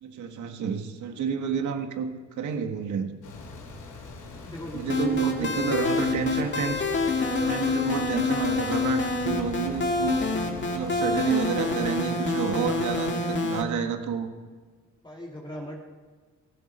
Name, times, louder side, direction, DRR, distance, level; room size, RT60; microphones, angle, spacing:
voice 1, 0.0-3.1 4.7-6.9 7.3-10.3 10.7-14.3, right 6 dB, 75° right, 6 dB, 1.8 m, -29 dB
sound 1, 3.2-11.3, left 3 dB, 85° left, 3.5 m, -42 dB
voice 2, 4.3-5.8 6.2-6.4 10.3-10.6 11.0-11.4 15.0-15.8, left 1 dB, 15° left, -3 dB, 2.4 m, -39 dB
sound 2, 4.9-13.6, left 3 dB, 40° left, 2.0 m, -27 dB
17.5 x 15.5 x 4.5 m, 1.5 s
cardioid pair, 90°, 30 cm